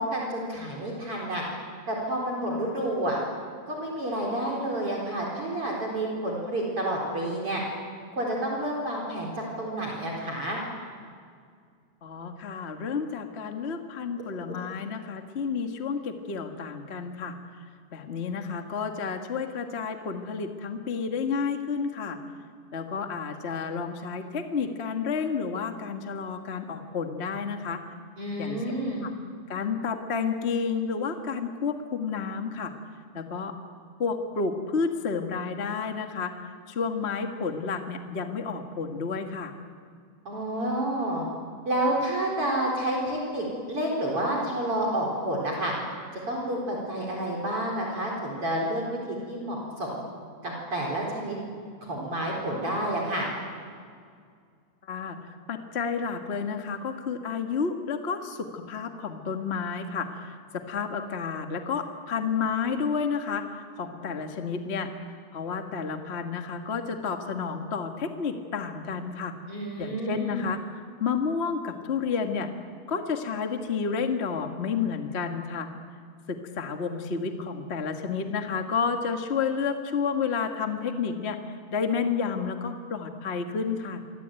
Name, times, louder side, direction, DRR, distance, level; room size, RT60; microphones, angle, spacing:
voice 1, 0.0-1.4 1.9-3.2 3.7-7.6 8.1-10.6 14.5-14.6 28.2-29.0 40.2-41.3 41.6-45.7 46.3-50.0 50.4-51.4 51.8-53.3 69.5-70.5, right 1 dB, 35° right, -2 dB, 4.9 m, -29 dB
voice 2, 12.0-17.3 17.9-22.2 22.7-27.8 28.4-28.6 29.0-29.1 29.5-32.7 33.1-33.5 34.0-36.3 36.7-39.5 54.9-55.2 55.5-63.4 63.8-64.9 65.3-69.3 69.8-70.6 71.0-72.5 72.9-75.7 76.3-81.4 81.7-84.0, left 5 dB, 60° left, 5 dB, 0.6 m, -30 dB
27.0 x 24.0 x 9.1 m, 2.1 s
omnidirectional pair, 4.4 m